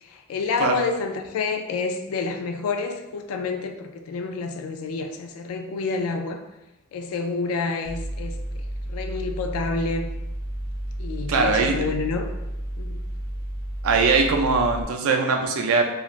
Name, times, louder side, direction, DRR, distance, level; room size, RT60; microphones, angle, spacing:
voice 1, 0.0-6.4 6.9-8.4 8.9-10.1 11.0-12.3 12.8-13.0, left 4 dB, 75° left, 5 dB, 0.3 m, -28 dB
Mechanical fan, 7.8-14.8, right 1 dB, 40° left, 0.8 m, -32 dB
voice 2, 11.3-11.8 13.8-15.8, right 4 dB, 65° right, 3 dB, 0.4 m, -21 dB
3.0 x 2.3 x 2.4 m, 0.97 s
head